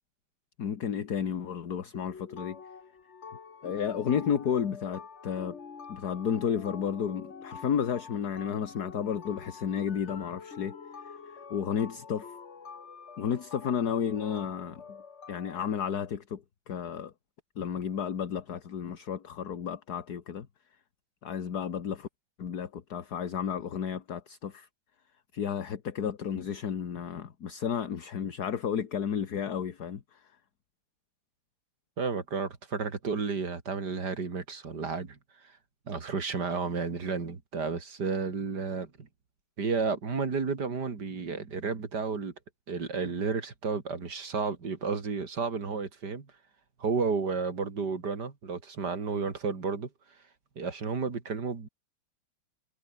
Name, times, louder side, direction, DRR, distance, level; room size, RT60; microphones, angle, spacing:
voice 1, 0.6-2.6 3.6-5.6 5.9-10.8 11.0-12.4 13.2-15.0 15.3-17.1 17.6-20.5 21.2-22.1 22.4-24.7 25.3-30.2, left 7 dB, 50° left, 2.0 m, -32 dB
sound 1, 1.9-15.7, left 5 dB, 35° left, 1.6 m, -47 dB
voice 2, 32.0-35.2 35.9-39.1 39.6-42.3 42.7-46.3 46.8-49.9 50.6-51.7, right 5 dB, 55° right, 3.3 m, -32 dB
omnidirectional pair, 2.3 m